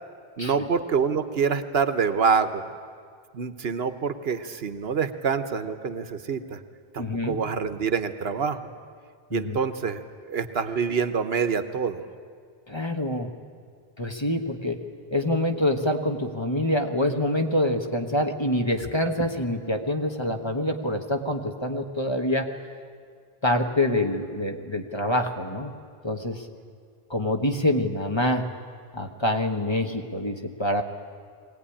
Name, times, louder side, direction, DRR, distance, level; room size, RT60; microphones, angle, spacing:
voice 1, 0.4-2.7 3.3-6.6 6.9-8.7 9.3-10.0 10.3-12.1, right 6 dB, 70° right, 10 dB, 1.2 m, -26 dB
voice 2, 7.0-7.4 9.3-9.6 12.7-13.3 14.0-14.8 15.1-22.5 23.4-25.7 26.0-26.4 27.1-28.4 28.9-30.8, left 1 dB, 25° left, 4 dB, 1.4 m, -26 dB
22.0 x 17.5 x 10.0 m, 2.1 s
omnidirectional pair, 1.1 m